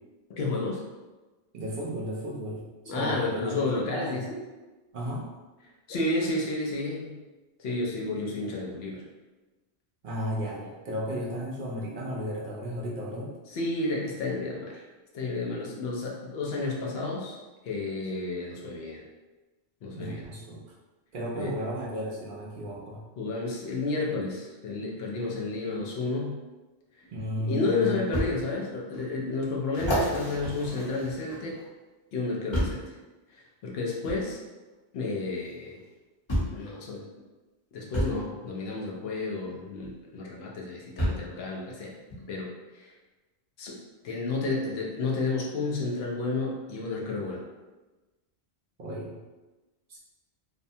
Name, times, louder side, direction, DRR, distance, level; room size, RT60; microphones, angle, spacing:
voice 1, 0.3-0.8 2.9-4.4 5.9-7.2 7.6-9.0 13.5-14.9 15.1-17.4 17.6-19.0 19.8-20.3 21.4-21.5 23.2-26.4 27.4-31.6 32.1-32.9 33.3-34.4 34.9-35.8 36.5-37.0 37.7-41.9 42.3-42.9 43.6-43.8 44.0-47.4, left 3 dB, 70° left, -2 dB, 0.8 m, -31 dB
voice 2, 1.5-4.2 4.9-5.3 10.0-13.3 19.9-20.6 21.1-23.0 27.1-28.0 48.8-49.2 49.9-50.0, equal, 60° right, -4 dB, 0.6 m, -34 dB
sound 1, 27.0-27.1 28.1-28.3 28.9-29.0 29.7-31.6 32.5-32.9 34.0-34.2 35.5-35.6 36.3-36.6 37.9-38.2 39.8-39.9 41.0-41.3 42.1-42.2, equal, 25° left, 0.9 m, -29 dB
2.7 x 2.1 x 2.6 m, 1.2 s
omnidirectional pair, 1.1 m